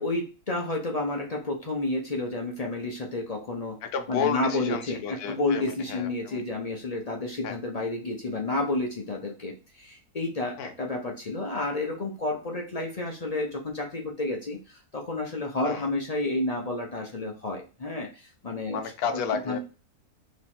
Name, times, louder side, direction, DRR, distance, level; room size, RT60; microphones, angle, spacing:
voice 1, 0.0-3.8 4.1-18.8 19.5-19.6, left 2 dB, 45° left, 0 dB, 0.5 m, -30 dB
voice 2, 3.8-6.6 7.4-7.6 10.6-10.7 15.6-15.9 18.7-19.6, left 6 dB, 75° left, 6 dB, 1.2 m, -32 dB
3.1 x 3.0 x 4.2 m, 0.33 s
omnidirectional pair, 1.7 m